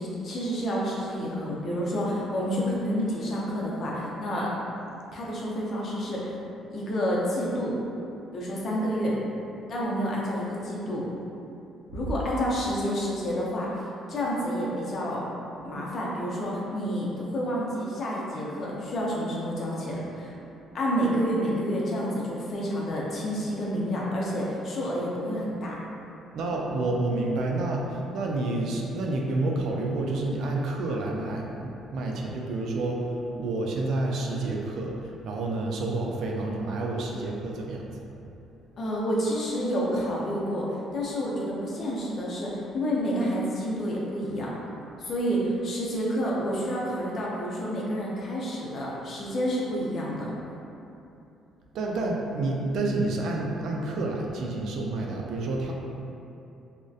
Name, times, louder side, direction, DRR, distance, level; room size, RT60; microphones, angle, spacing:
voice 1, 0.0-4.5 5.1-6.4 6.7-7.8 8.3-9.2 9.7-11.0 11.9-13.7 14.1-15.2 15.6-20.3 20.7-25.8 38.8-44.5 45.0-50.3, equal, 50° left, -5 dB, 0.5 m, -29 dB
voice 2, 26.3-38.0 51.7-55.7, right 2 dB, 70° right, -1 dB, 0.3 m, -29 dB
2.5 x 2.1 x 2.3 m, 2.8 s
cardioid pair, 95°, 0 cm